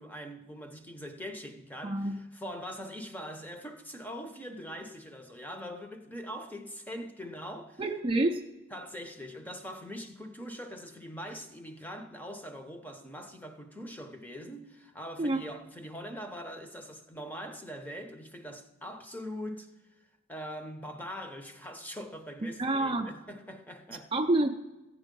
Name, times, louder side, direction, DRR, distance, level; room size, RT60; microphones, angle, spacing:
voice 1, 0.0-7.8 8.7-19.7 20.3-24.1, equal, 10° left, 0.8 m, -42 dB
voice 2, 1.8-2.2 7.8-8.4 15.2-15.4 22.6-23.1 24.1-24.5, right 2 dB, 25° right, 0.5 m, -27 dB
15.5 x 8.3 x 5.3 m
head